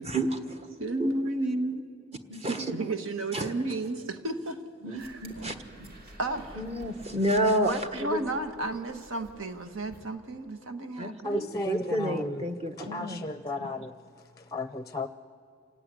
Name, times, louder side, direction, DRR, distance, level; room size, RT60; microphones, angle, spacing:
voice 1, 0.0-0.7 1.0-1.1 2.3-2.7 3.3-3.5 4.8-5.6 6.6-7.7 8.0-8.2 11.0-13.2, right 1 dB, 30° right, 6 dB, 1.4 m, -30 dB
voice 2, 0.8-1.8 2.4-4.6 4.9-5.5 6.2-6.6 7.7-11.5, right 2 dB, 85° right, 8 dB, 1.3 m, -33 dB
sound 1, 5.0-10.0, right 1 dB, 50° right, 2.7 m, -50 dB
voice 3, 11.2-12.5 12.8-15.1, left 2 dB, 20° left, 11 dB, 0.5 m, -35 dB
27.0 x 16.0 x 9.6 m, 2.2 s
head